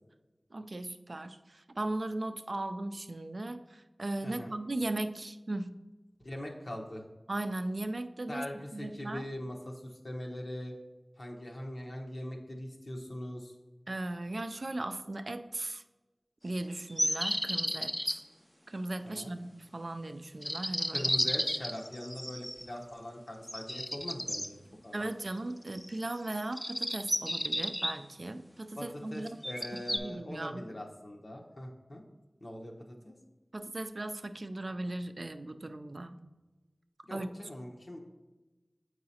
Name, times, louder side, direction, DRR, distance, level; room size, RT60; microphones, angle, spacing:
voice 1, 0.5-5.7 7.3-8.5 8.7-9.2 13.9-15.8 16.4-18.2 18.7-21.2 24.9-29.4 29.9-30.6 33.5-36.1 37.1-37.3, right 2 dB, 65° right, 8 dB, 0.3 m, -37 dB
voice 2, 4.2-4.5 6.2-7.0 8.3-10.7 11.2-13.5 19.0-19.3 20.9-24.6 24.8-25.0 28.8-32.0 32.4-33.1 37.1-38.0, left 1 dB, 65° left, 0 dB, 0.9 m, -42 dB
sound 1, 17.0-18.2 20.4-22.7 23.5-24.5 25.7-26.1 26.5-27.9 29.3-30.0, equal, 10° left, 0.4 m, -32 dB
7.5 x 4.7 x 2.8 m, 1.1 s
wide cardioid pair, 40°, 0 cm